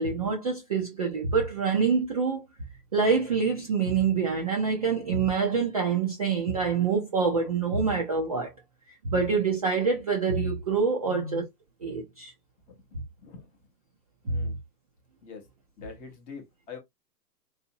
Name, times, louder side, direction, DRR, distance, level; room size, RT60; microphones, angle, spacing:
voice 1, 0.0-2.4 2.9-8.5 8.9-11.4 11.8-12.3 14.3-14.4, right 5 dB, 25° right, 0.4 m, -26 dB
voice 2, 11.0-11.4 12.7-13.5 14.2-14.5 15.2-15.5 15.8-16.8, left 4 dB, 15° left, 0.6 m, -42 dB
4.0 x 2.7 x 2.7 m
hypercardioid pair, 130°, 49 cm